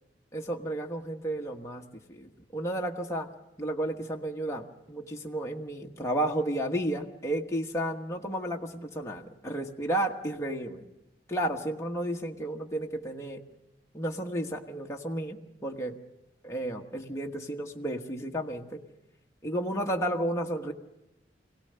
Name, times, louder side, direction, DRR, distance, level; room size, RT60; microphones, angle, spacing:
voice 1, 0.3-3.3 3.6-10.9 11.3-13.4 13.9-16.0 16.4-18.8 19.4-20.7, right 1 dB, 15° left, 0 dB, 1.2 m, -32 dB
24.5 x 17.5 x 6.7 m, 0.93 s
head